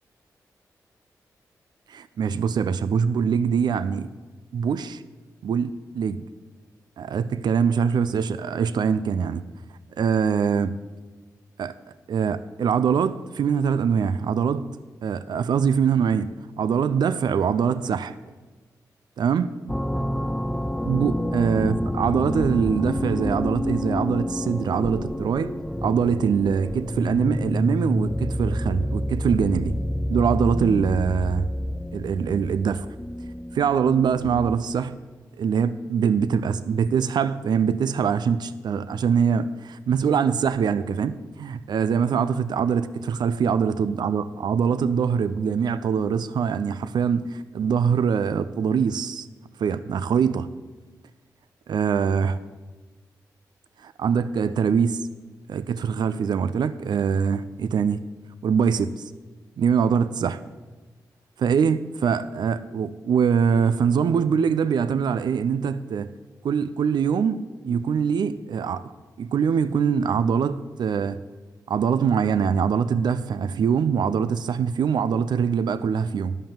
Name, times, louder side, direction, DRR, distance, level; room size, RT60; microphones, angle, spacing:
voice 1, 1.9-4.1 4.5-5.0 5.4-6.2 7.0-9.4 10.0-10.7 11.6-11.7 12.1-14.7 15.0-16.3 16.6-18.2 19.2-19.5 20.8-25.5 25.8-29.7 30.1-31.5 31.9-32.9 33.5-34.9 35.4-49.3 49.6-50.5 51.7-52.4 53.8-55.0 55.5-58.0 58.4-58.9 59.6-60.4 61.4-66.1 66.4-68.8 69.2-71.2 71.7-76.4, right 6 dB, 70° right, 0.5 m, -23 dB
sound 1, 19.7-34.7, left 1 dB, 5° left, 0.5 m, -28 dB
10.5 x 5.5 x 7.2 m
supercardioid pair, 45°, 8 cm